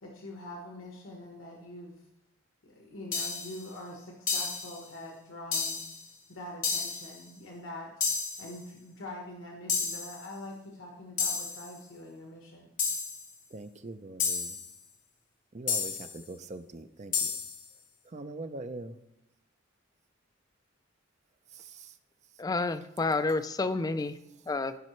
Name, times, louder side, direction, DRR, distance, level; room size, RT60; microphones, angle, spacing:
voice 1, 0.0-2.0 2.6-5.8 6.3-7.9 8.4-12.7, left 1 dB, 80° left, 0 dB, 1.2 m, -44 dB
sound 1, 3.1-3.6 4.3-4.8 5.5-6.0 6.6-7.1 8.0-8.5 9.7-10.2 11.2-11.7 12.8-13.3 14.2-14.7 15.7-16.2 17.1-17.6, left 5 dB, 45° left, 1.3 m, -31 dB
voice 2, 13.5-14.6 15.5-17.3 18.0-19.0 21.5-21.9, right 2 dB, 35° right, 9 dB, 0.5 m, -42 dB
voice 3, 22.4-24.2 24.5-24.8, left 3 dB, 20° left, 10 dB, 0.4 m, -29 dB
15.0 x 5.5 x 3.1 m, 0.85 s
head